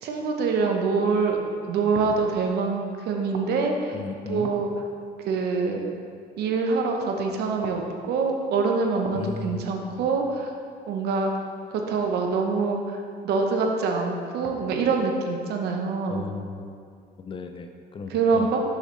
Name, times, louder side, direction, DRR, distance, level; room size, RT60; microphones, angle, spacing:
voice 1, 0.0-3.9 4.3-4.7 5.2-5.8 6.4-10.5 10.9-11.3 11.7-16.2 18.1-18.6, right 4 dB, 75° right, 2 dB, 0.8 m, -25 dB
voice 2, 3.9-4.5 9.1-10.1 16.1-16.8 17.2-18.5, left 4 dB, 30° left, 6 dB, 0.4 m, -36 dB
6.4 x 6.1 x 3.2 m, 2.2 s
cardioid pair, 110°, 17 cm